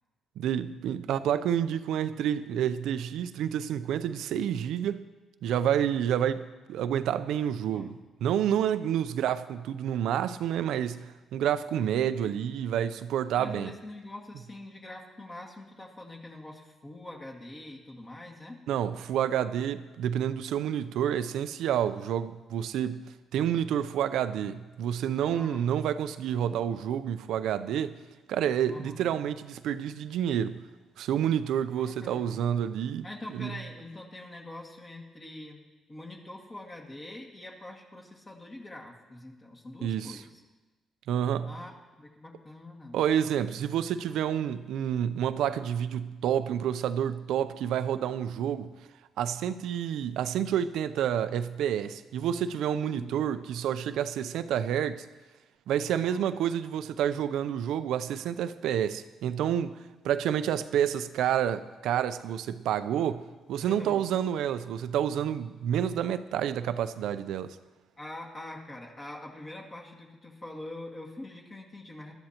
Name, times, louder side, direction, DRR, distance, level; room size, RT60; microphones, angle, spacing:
voice 1, 0.4-5.0 5.4-13.7 18.7-23.0 23.3-28.0 28.3-30.6 31.0-33.1 33.3-33.5 39.8-40.2 41.1-41.5 42.9-48.7 49.2-55.1 55.7-59.8 60.0-63.2 63.5-67.6, right 9 dB, 85° right, 0.6 m, -29 dB
voice 2, 13.4-18.6 25.3-25.8 28.7-29.1 31.8-32.4 33.0-35.6 35.9-40.3 41.4-41.7 42.0-43.0 52.8-53.2 55.9-56.3 63.6-64.0 68.0-72.1, left 1 dB, 30° left, 2.0 m, -44 dB
19.5 x 12.5 x 2.9 m
cardioid pair, 90°, 0 cm